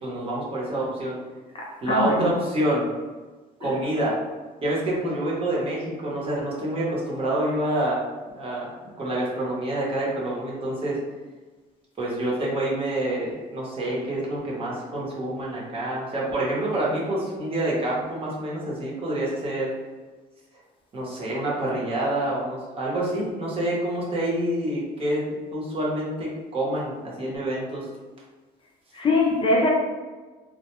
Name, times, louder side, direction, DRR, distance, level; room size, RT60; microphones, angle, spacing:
voice 1, 0.0-1.1 1.8-2.9 3.6-4.2 4.6-8.0 8.3-11.0 12.0-19.7 20.9-27.9, right 1 dB, 35° right, -5 dB, 0.9 m, -27 dB
voice 2, 1.5-2.3 3.6-3.8 28.9-29.7, left 2 dB, 30° left, -3 dB, 0.5 m, -23 dB
2.2 x 2.1 x 2.9 m, 1.3 s
cardioid pair, 110°, 17 cm